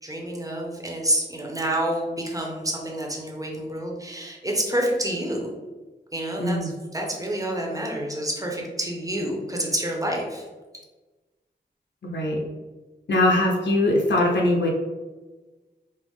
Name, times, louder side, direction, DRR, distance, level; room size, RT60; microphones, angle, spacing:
voice 1, 0.0-5.5 6.1-10.4, right 1 dB, 20° right, -1 dB, 0.9 m, -28 dB
voice 2, 6.4-6.7 12.0-12.4 13.1-14.7, left 1 dB, 75° left, -1 dB, 0.8 m, -21 dB
5.4 x 2.0 x 3.6 m, 1.2 s
wide cardioid pair, 85°, 19 cm